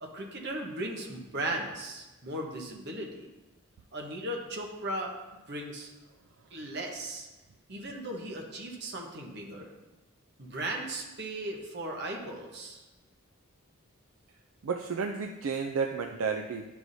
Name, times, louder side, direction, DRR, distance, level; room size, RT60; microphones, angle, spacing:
voice 1, 0.0-3.3 3.9-5.2 5.5-5.9 6.5-7.3 7.7-9.7 10.4-12.8, right 1 dB, 50° right, 0 dB, 1.1 m, -37 dB
voice 2, 14.6-16.7, right 5 dB, 70° right, 4 dB, 0.4 m, -32 dB
11.5 x 4.6 x 2.7 m, 1.1 s
head